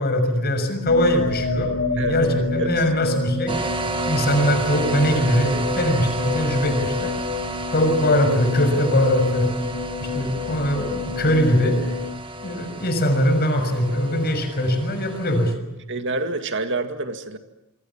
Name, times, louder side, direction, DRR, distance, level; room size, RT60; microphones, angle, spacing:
voice 1, 0.0-3.6 4.1-7.1 7.7-9.5 10.1-11.8 12.4-15.5, equal, 50° left, 7 dB, 6.5 m, -21 dB
sound 1, 0.9-12.9, left 4 dB, 65° left, 5.7 m, -30 dB
sound 2, 3.5-15.5, right 2 dB, 25° right, 1.8 m, -32 dB
voice 2, 15.9-17.4, right 2 dB, 60° right, 7 dB, 2.1 m, -27 dB
27.5 x 24.5 x 7.4 m, 0.95 s
head